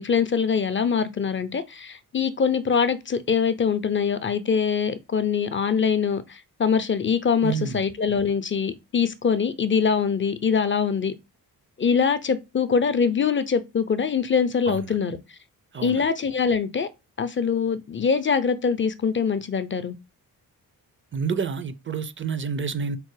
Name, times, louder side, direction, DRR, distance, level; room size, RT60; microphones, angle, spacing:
voice 1, 0.0-11.1 11.8-15.2 15.8-16.9 17.2-19.9, left 6 dB, 30° left, 0.5 m, -23 dB
voice 2, 7.4-7.8 14.7-15.0 15.7-16.0 21.1-23.0, right 6 dB, 30° right, 0.5 m, -29 dB
4.4 x 2.0 x 3.2 m
cardioid pair, 70°, 39 cm